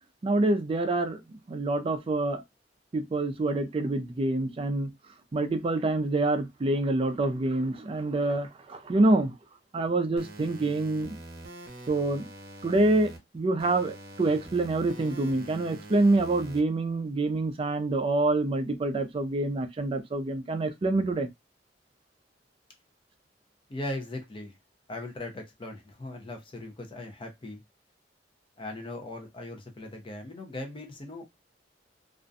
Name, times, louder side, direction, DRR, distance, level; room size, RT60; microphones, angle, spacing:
voice 1, 0.2-2.4 2.9-4.9 5.3-9.3 9.7-11.2 11.9-12.3 12.6-21.3, right 2 dB, 30° right, 0.4 m, -26 dB
sound 1, 10.2-13.2 13.6-16.6, right 1 dB, 55° right, 0.7 m, -45 dB
voice 2, 23.7-24.6 24.9-27.6 28.6-31.2, left 1 dB, 30° left, 0.6 m, -39 dB
2.4 x 2.1 x 2.5 m
head